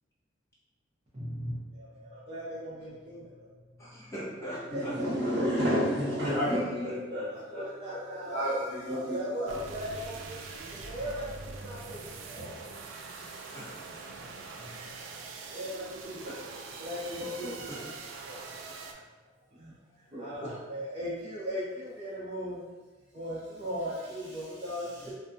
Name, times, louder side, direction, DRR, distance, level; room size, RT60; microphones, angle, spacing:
voice 1, 1.1-3.5 4.5-5.4 6.2-8.6 8.9-12.6 14.2-14.3 14.6-15.0 15.5-18.7 19.5-22.6 23.1-25.1, equal, 30° right, -10 dB, 0.5 m, -38 dB
voice 2, 3.8-5.3 5.6-5.7 13.5-13.9, equal, 15° left, -8 dB, 0.8 m, -41 dB
voice 3, 4.7-7.0 8.3-9.1 12.9-13.6, equal, 60° right, -6 dB, 0.8 m, -30 dB
sound 1, 9.5-18.9, right 4 dB, 80° right, 0.3 m, -43 dB
2.5 x 2.3 x 2.4 m, 1.3 s
head